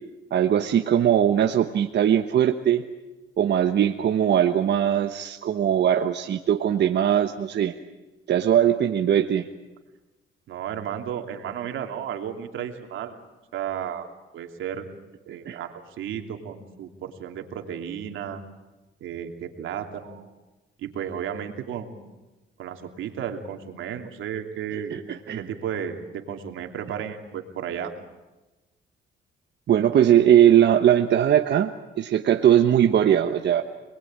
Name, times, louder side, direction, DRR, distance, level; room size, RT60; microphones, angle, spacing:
voice 1, 0.3-2.8 3.4-7.7 8.3-9.5 15.5-15.6 24.9-25.4 29.7-31.7 32.0-33.6, right 10 dB, 60° right, 5 dB, 1.2 m, -20 dB
voice 2, 10.5-13.2 13.5-14.1 14.3-14.8 15.3-18.4 19.0-20.3 20.8-21.9 22.6-24.9 25.4-27.9, right 9 dB, 80° right, 4 dB, 2.8 m, -33 dB
27.0 x 20.5 x 8.8 m, 1.1 s
cardioid pair, 90°, 20 cm